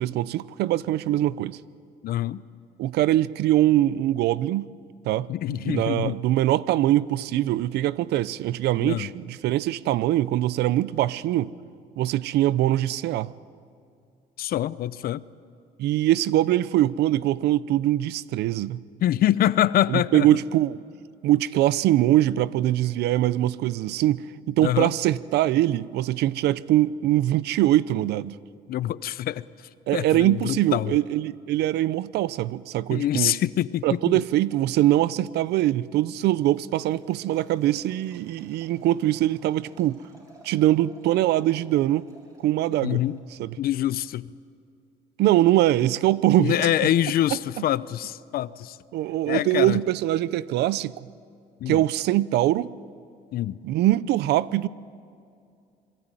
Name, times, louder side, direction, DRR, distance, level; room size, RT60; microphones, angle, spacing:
voice 1, 0.0-1.6 2.8-4.7 5.1-11.5 12.0-13.3 15.8-18.8 19.9-20.8 21.2-28.4 29.9-33.4 33.8-40.0 40.4-42.0 42.4-43.0 43.4-43.5 45.2-46.7 47.6-47.7 48.9-51.1 51.7-52.7 53.6-54.7, right 14 dB, 75° right, 0.7 m, -23 dB
voice 2, 2.0-2.4 5.3-6.2 8.8-9.1 14.4-15.2 19.0-20.3 24.6-24.9 28.7-29.4 29.9-30.9 32.9-34.2 42.8-43.2 43.6-44.3 46.4-48.8 49.3-49.8 51.6-51.8 53.3-53.6, left 12 dB, 60° left, 0.7 m, -25 dB
Liquid, 36.6-43.5, right 1 dB, 20° right, 7.1 m, -56 dB
26.5 x 22.0 x 9.1 m
cardioid pair, 110°, 17 cm